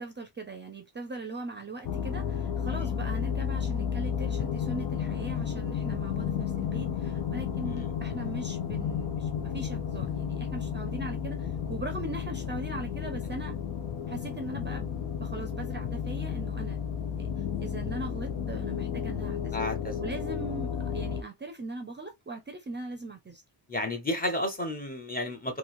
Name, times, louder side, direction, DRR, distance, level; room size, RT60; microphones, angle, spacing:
voice 1, 0.0-13.6 14.1-14.9 15.2-16.8 17.2-17.3 17.6-19.6 20.0-23.4, right 2 dB, 25° right, 0.4 m, -40 dB
sound 1, 1.8-21.2, left 8 dB, 85° left, 0.7 m, -32 dB
voice 2, 19.5-20.0 23.7-25.6, left 1 dB, 20° left, 0.8 m, -32 dB
3.0 x 2.6 x 2.5 m
wide cardioid pair, 160°, 41 cm